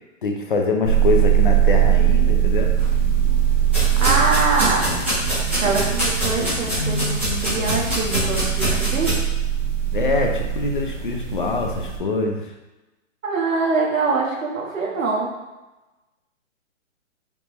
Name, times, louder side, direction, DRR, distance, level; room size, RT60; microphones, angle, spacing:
voice 1, 0.2-2.7 9.9-12.5, left 3 dB, 40° left, 2 dB, 0.6 m, -24 dB
sound 1, 0.8-12.0, right 10 dB, 70° right, 1.1 m, -21 dB
sound 2, 2.8-9.1, equal, 10° right, 0.5 m, -25 dB
voice 2, 3.8-5.0 5.6-9.1 13.2-15.3, right 3 dB, 85° right, -2 dB, 1.5 m, -24 dB
5.0 x 3.3 x 3.1 m, 1.1 s
hypercardioid pair, 170°, 39 cm